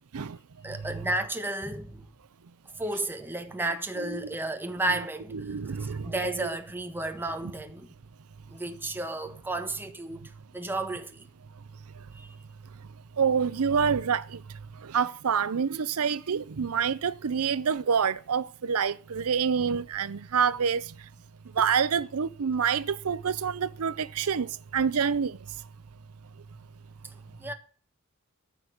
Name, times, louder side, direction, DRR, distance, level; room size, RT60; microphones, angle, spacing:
voice 1, 0.6-2.0 2.8-7.9 8.5-11.3 12.1-12.3 21.6-21.7 27.0-27.5, right 2 dB, 10° right, 1.5 m, -33 dB
voice 2, 4.0-4.3 5.3-6.5 13.2-14.4 14.8-20.9 21.5-25.4, right 6 dB, 85° right, 0.6 m, -27 dB
14.5 x 6.0 x 7.9 m
head